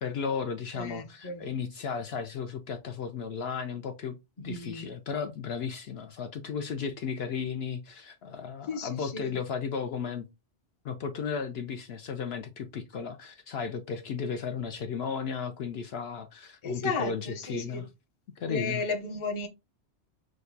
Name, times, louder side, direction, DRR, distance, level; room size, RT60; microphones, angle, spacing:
voice 1, 0.0-10.3 10.8-17.9 18.4-18.8, left 6 dB, 65° left, 0.7 m, -34 dB
voice 2, 0.7-1.5 4.4-4.9 8.7-9.3 16.6-17.8 18.5-19.5, left 3 dB, 30° left, 0.6 m, -34 dB
6.3 x 2.2 x 2.6 m
omnidirectional pair, 1.2 m